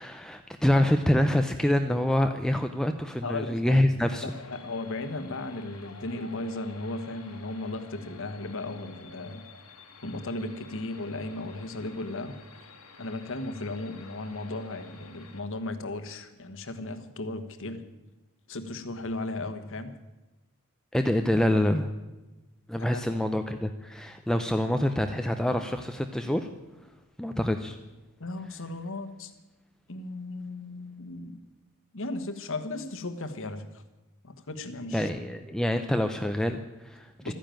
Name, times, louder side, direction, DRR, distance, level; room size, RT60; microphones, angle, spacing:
voice 1, 0.0-4.3 20.9-21.9 22.7-26.5 27.2-27.8 34.9-37.3, left 1 dB, 5° left, 6 dB, 0.6 m, -26 dB
voice 2, 3.2-9.4 10.0-12.3 13.0-17.8 18.5-19.9 22.8-23.2 28.2-29.3 29.9-31.4 31.9-33.8 34.2-35.1 37.2-37.3, left 2 dB, 60° left, 9 dB, 1.4 m, -36 dB
sound 1, 4.3-15.4, left 4 dB, 85° left, 2.0 m, -50 dB
13.5 x 10.0 x 9.0 m, 1.1 s
head